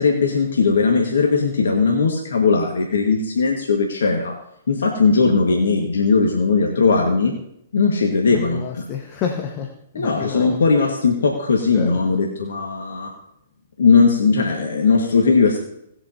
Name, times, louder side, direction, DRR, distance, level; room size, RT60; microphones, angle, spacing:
voice 1, 0.0-4.4 4.7-7.3 7.7-8.8 9.9-13.1 13.8-15.6, left 4 dB, 75° left, 1 dB, 1.7 m, -18 dB
voice 2, 8.3-10.6 11.7-12.0, left 7 dB, 35° left, 2 dB, 1.4 m, -29 dB
18.5 x 8.0 x 2.8 m, 0.78 s
figure-of-eight pair, 120°, 0 cm